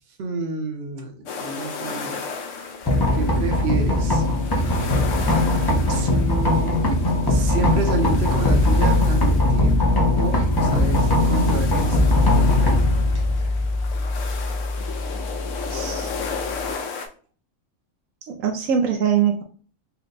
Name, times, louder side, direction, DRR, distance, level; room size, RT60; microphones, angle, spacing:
voice 1, 0.2-2.2 2.6-4.3 5.9-7.0 7.2-9.8 10.2-12.6, right 3 dB, 55° right, 1.0 m, -30 dB
sound 1, 1.3-17.1, left 5 dB, 75° left, 1.0 m, -35 dB
sound 2, 2.8-16.7, left 1 dB, 25° left, 0.6 m, -20 dB
voice 2, 15.7-16.1 18.3-19.4, right 8 dB, 80° right, 1.0 m, -22 dB
4.3 x 2.2 x 3.8 m
omnidirectional pair, 1.4 m